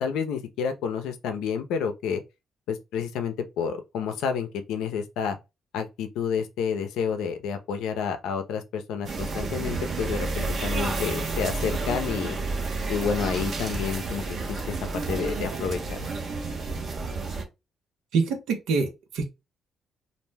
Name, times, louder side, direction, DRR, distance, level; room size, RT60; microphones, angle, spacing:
voice 1, 0.0-2.2 2.7-5.4 5.7-12.4 12.9-16.0, left 7 dB, 90° left, 0.5 m, -30 dB
sound 1, 9.0-17.4, right 3 dB, 55° right, 0.8 m, -30 dB
voice 2, 18.1-19.2, right 4 dB, 85° right, 0.7 m, -25 dB
2.5 x 2.1 x 3.3 m
cardioid pair, 90°, 0 cm